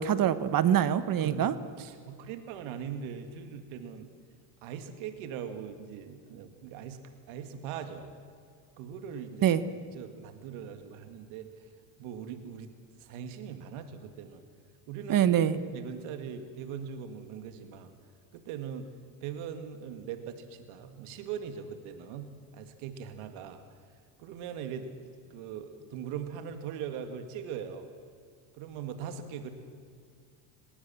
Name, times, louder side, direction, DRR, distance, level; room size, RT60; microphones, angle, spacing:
voice 1, 0.0-1.5 9.4-9.6 15.1-15.6, right 10 dB, 40° right, 13 dB, 1.1 m, -24 dB
voice 2, 1.2-1.5 1.8-4.1 4.6-7.0 7.3-8.1 8.8-9.6 10.0-11.5 12.0-12.7 13.0-14.4 14.9-17.9 18.3-18.9 19.2-23.6 24.2-27.9 28.5-29.5, right 7 dB, 70° right, 7 dB, 2.2 m, -40 dB
19.5 x 19.0 x 7.5 m, 2.2 s
supercardioid pair, 110°, 50 cm